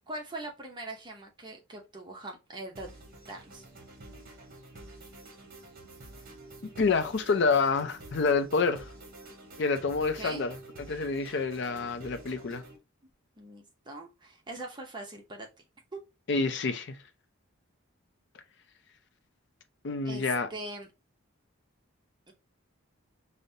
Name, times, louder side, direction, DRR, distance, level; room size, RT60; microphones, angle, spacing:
voice 1, 0.1-2.9 3.3-3.6 10.1-10.5 13.4-15.5 20.0-20.9 22.3-22.4, right 2 dB, 20° right, 0.6 m, -42 dB
sound 1, 2.8-12.8, right 2 dB, 40° right, 0.9 m, -49 dB
voice 2, 6.8-8.9 9.6-12.6 16.3-17.0 19.8-20.5, left 4 dB, 55° left, 0.4 m, -28 dB
5.1 x 2.1 x 2.6 m
head